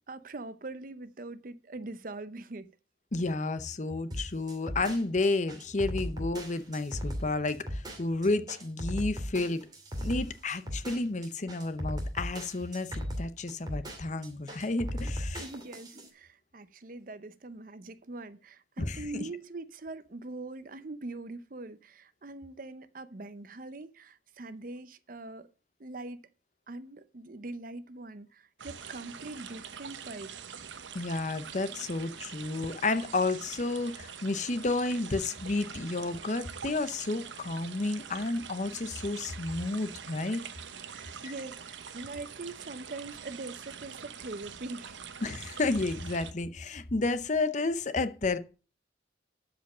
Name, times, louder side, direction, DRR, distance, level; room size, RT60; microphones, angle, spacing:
voice 1, 0.1-2.7 15.4-25.5 25.8-26.2 26.7-30.3 40.9-45.0, right 2 dB, 45° right, 0.7 m, -42 dB
voice 2, 3.1-9.7 10.0-15.4 18.8-19.2 30.9-40.4 41.2-41.3 45.2-48.4, left 2 dB, 40° left, 0.7 m, -31 dB
sound 1, 4.1-16.1, equal, 20° right, 2.4 m, -37 dB
sound 2, 28.6-46.3, right 7 dB, 80° right, 1.0 m, -45 dB
12.5 x 5.1 x 6.1 m
head